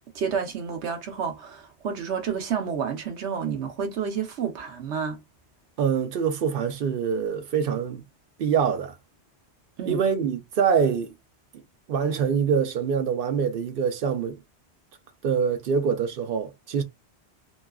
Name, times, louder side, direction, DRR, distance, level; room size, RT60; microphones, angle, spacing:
voice 1, 0.1-5.2 9.8-10.0, right 7 dB, 80° right, 1.1 m, -30 dB
voice 2, 5.8-8.0 8.4-8.9 9.9-11.1 11.9-14.4 15.2-16.8, right 6 dB, 60° right, 0.7 m, -25 dB
2.9 x 2.3 x 2.3 m
omnidirectional pair, 1.1 m